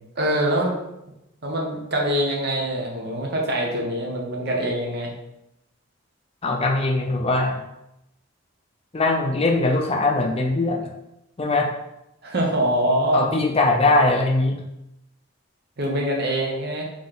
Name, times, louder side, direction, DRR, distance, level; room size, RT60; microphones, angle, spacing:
voice 1, 0.2-0.7 1.4-5.1 12.2-13.3 15.8-16.8, right 1 dB, 55° right, -1 dB, 1.1 m, -24 dB
voice 2, 6.4-7.6 8.9-10.9 11.4-11.7 13.1-14.6, left 2 dB, 30° left, 2 dB, 0.5 m, -21 dB
4.1 x 3.2 x 3.8 m, 0.87 s
head